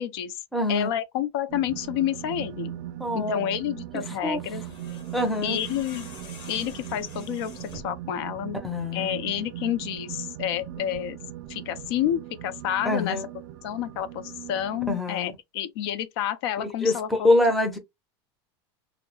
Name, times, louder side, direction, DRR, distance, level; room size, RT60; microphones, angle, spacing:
voice 1, 0.0-0.4 0.7-2.8 3.1-4.6 5.4-6.1 6.5-8.6 8.9-11.2 11.5-13.2 13.6-17.3, left 11 dB, 70° left, 0.4 m, -29 dB
voice 2, 0.5-0.9 3.0-3.5 4.2-4.4 5.1-5.6 8.6-9.1 12.9-13.3 14.9-15.3 16.6-17.8, left 1 dB, ahead, 0.5 m, -25 dB
sound 1, 1.5-14.9, right 12 dB, 60° right, 0.4 m, -39 dB
sound 2, 4.4-8.0, left 4 dB, 35° left, 0.7 m, -46 dB
2.2 x 2.0 x 2.8 m
supercardioid pair, 145°, 14 cm